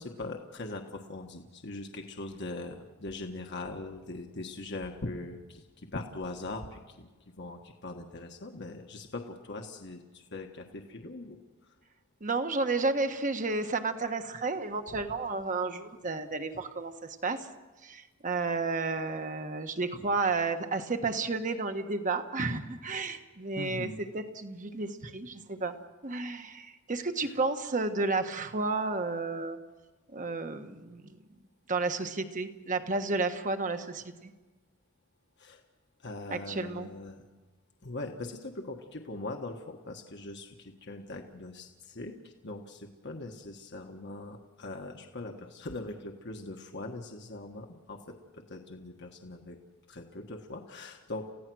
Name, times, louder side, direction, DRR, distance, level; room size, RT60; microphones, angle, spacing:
voice 1, 0.0-11.7 23.5-24.0 27.2-27.3 35.4-35.6 36.0-37.2 37.8-49.6 49.9-51.3, left 2 dB, 60° left, 3 dB, 1.5 m, -41 dB
voice 2, 12.2-17.5 17.8-25.7 26.0-29.6 30.1-31.2 31.7-34.3 36.3-36.9, right 3 dB, 40° right, 7 dB, 1.4 m, -32 dB
29.0 x 16.0 x 6.3 m, 1.2 s
head